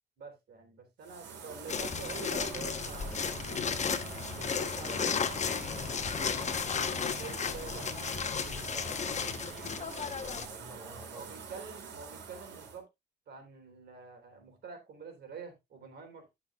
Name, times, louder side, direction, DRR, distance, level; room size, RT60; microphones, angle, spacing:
voice 1, 0.2-3.6 4.5-5.4 7.2-8.1 11.1-12.9 13.3-16.3, right 5 dB, 65° right, 3.7 m, -47 dB
sound 1, 1.0-12.8, right 6 dB, 85° right, 2.9 m, -45 dB
sound 2, 1.7-10.5, left 6 dB, 40° left, 1.0 m, -34 dB
voice 2, 4.3-4.8 5.7-7.4 8.7-11.3, left 1 dB, 5° left, 3.6 m, -52 dB
14.0 x 6.0 x 2.4 m
cardioid pair, 95°, 18 cm